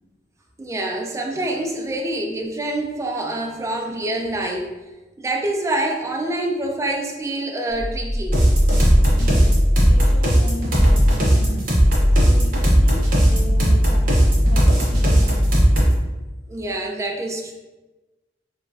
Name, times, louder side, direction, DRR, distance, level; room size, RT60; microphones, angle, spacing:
voice 1, 0.6-4.7 5.2-8.4 16.5-17.5, right 1 dB, 15° right, 1 dB, 0.3 m, -26 dB
sound 1, 7.7-10.4 10.7-11.2 11.6-15.9, equal, 5° left, 0.8 m, -19 dB
sound 2, 8.3-16.0, right 1 dB, 50° right, 0.7 m, -18 dB
voice 2, 9.2-11.7 12.2-15.4, equal, 80° left, -1 dB, 0.6 m, -36 dB
3.0 x 2.3 x 2.5 m, 1.1 s
head